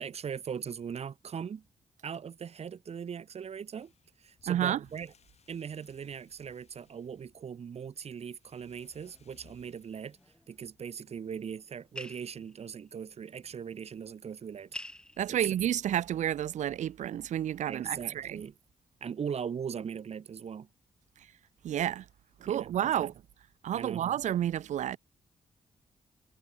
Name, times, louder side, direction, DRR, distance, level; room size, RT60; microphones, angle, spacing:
voice 1, 0.0-1.6 2.0-3.9 4.2-5.1 5.5-10.2 10.5-14.7 15.3-15.6 17.7-18.6 19.0-20.7 22.4-23.1 23.7-24.0, right 7 dB, 60° right, 1.4 m, -39 dB
sound 1, 3.8-10.4, left 7 dB, 60° left, 4.1 m, -66 dB
voice 2, 4.5-4.8 15.2-18.4 21.6-22.0 22.4-23.1 23.6-25.0, right 11 dB, 75° right, 0.5 m, -30 dB
sound 2, 8.8-16.6, left 1 dB, 5° left, 4.5 m, -51 dB
cardioid pair, 90°, 12 cm